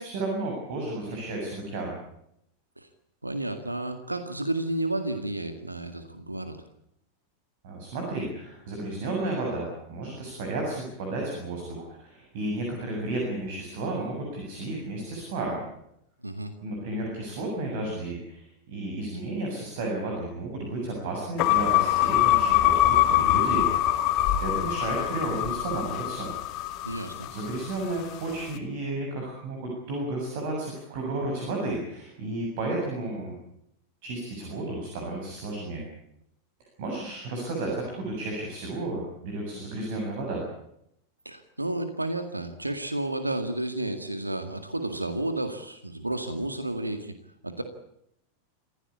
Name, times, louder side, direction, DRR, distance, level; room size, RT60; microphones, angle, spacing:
voice 1, 0.0-2.0 7.6-15.6 16.6-23.7 24.4-26.3 27.3-33.4 34.0-35.8 36.8-40.4, right 2 dB, 50° right, 0 dB, 7.5 m, -32 dB
voice 2, 3.2-6.6 16.2-16.5 26.8-27.3 41.3-47.1 47.4-47.6, right 1 dB, 85° right, 8 dB, 2.0 m, -31 dB
sound 1, 21.4-27.7, left 13 dB, 40° left, 2.3 m, -23 dB
27.0 x 16.5 x 8.5 m, 0.77 s
figure-of-eight pair, 90°, 0 cm